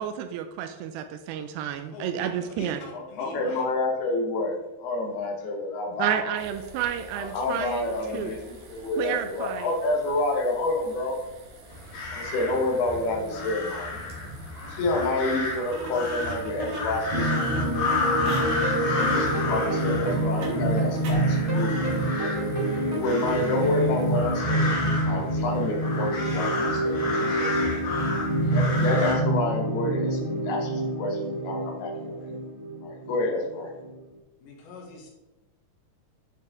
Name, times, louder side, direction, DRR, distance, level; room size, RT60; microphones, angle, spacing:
voice 1, 0.0-2.8 6.0-8.3 9.0-9.7, right 9 dB, 80° right, 7 dB, 2.5 m, -30 dB
voice 2, 1.8-3.7 7.9-8.4 9.0-9.2 34.4-35.1, left 3 dB, 90° left, 0 dB, 3.8 m, -43 dB
voice 3, 2.9-6.3 7.1-8.4 8.7-11.2 12.1-14.0 14.6-17.3 18.8-22.3 22.8-27.9 28.5-32.3 32.8-33.7, left 2 dB, 70° left, 2 dB, 2.8 m, -29 dB
sound 1, 6.3-24.4, right 2 dB, 60° right, 2.8 m, -45 dB
sound 2, 11.7-29.1, left 3 dB, 50° left, 3.3 m, -31 dB
sound 3, 17.1-34.0, right 1 dB, 15° left, 1.4 m, -27 dB
10.5 x 4.9 x 3.5 m, 1.0 s
omnidirectional pair, 5.0 m